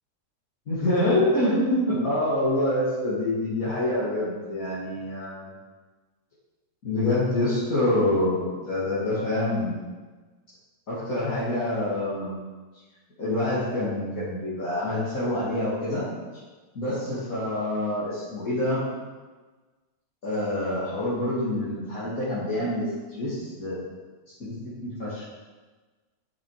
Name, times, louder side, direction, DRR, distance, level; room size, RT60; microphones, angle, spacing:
voice 1, 0.7-5.5 6.8-9.8 10.9-12.4 13.2-16.0 16.7-18.8 20.2-23.8 24.4-24.5 24.8-25.2, left 1 dB, 50° left, -12 dB, 3.1 m, -26 dB
10.5 x 7.3 x 5.1 m, 1.3 s
omnidirectional pair, 1.9 m